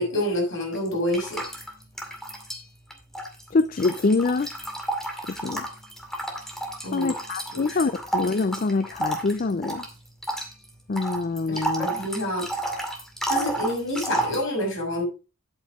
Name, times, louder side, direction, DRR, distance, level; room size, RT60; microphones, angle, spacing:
voice 1, 0.0-1.4 6.8-7.1 7.5-7.8 11.5-12.4 13.3-15.0, left 1 dB, 60° left, 6.3 m, -28 dB
sound 1, 0.7-2.6 2.9-14.4, right 1 dB, ahead, 2.2 m, -32 dB
voice 2, 3.5-4.5 5.3-5.7 6.9-9.9 10.9-11.9, left 3 dB, 40° left, 0.4 m, -25 dB
10.5 x 8.7 x 3.6 m
head